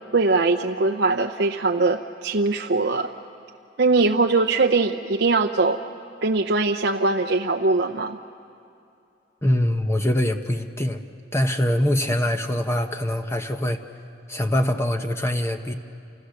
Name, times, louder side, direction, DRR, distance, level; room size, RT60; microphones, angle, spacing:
voice 1, 0.1-3.1 3.8-5.8 6.2-8.2, right 3 dB, 65° right, 4 dB, 0.7 m, -21 dB
voice 2, 9.4-11.0 11.3-13.8 14.3-15.7, left 1 dB, 15° left, 6 dB, 0.9 m, -23 dB
29.5 x 29.5 x 6.6 m, 2.6 s
head